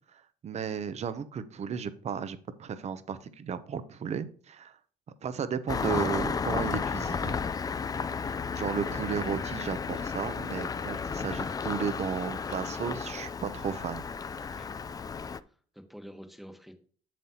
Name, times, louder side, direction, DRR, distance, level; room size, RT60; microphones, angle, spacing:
voice 1, 0.1-4.7 5.2-7.4 8.5-14.0, right 7 dB, 40° right, 13 dB, 0.7 m, -34 dB
Engine starting, 5.7-15.4, left 5 dB, 20° left, 0.3 m, -33 dB
voice 2, 14.4-14.7 15.5-16.8, equal, ahead, 5 dB, 1.2 m, -48 dB
7.4 x 7.4 x 2.9 m, 0.44 s
cardioid pair, 110°, 17 cm